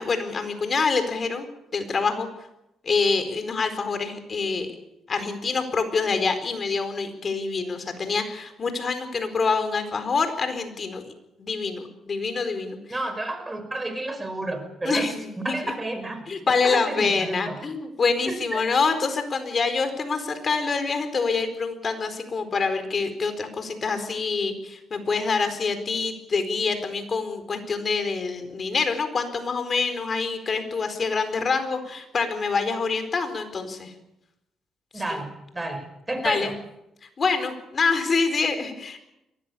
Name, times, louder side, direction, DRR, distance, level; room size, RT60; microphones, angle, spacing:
voice 1, 0.0-1.5 1.7-2.3 2.8-4.7 5.1-11.0 11.4-12.8 14.8-15.7 16.3-34.0 34.9-35.2 36.2-36.5 37.2-39.0, left 4 dB, 40° left, 9 dB, 4.3 m, -26 dB
voice 2, 12.9-17.6 18.3-18.6 34.9-36.5, right 2 dB, 15° right, 7 dB, 5.4 m, -31 dB
23.5 x 18.0 x 8.5 m, 0.88 s
cardioid pair, 90°, 0 cm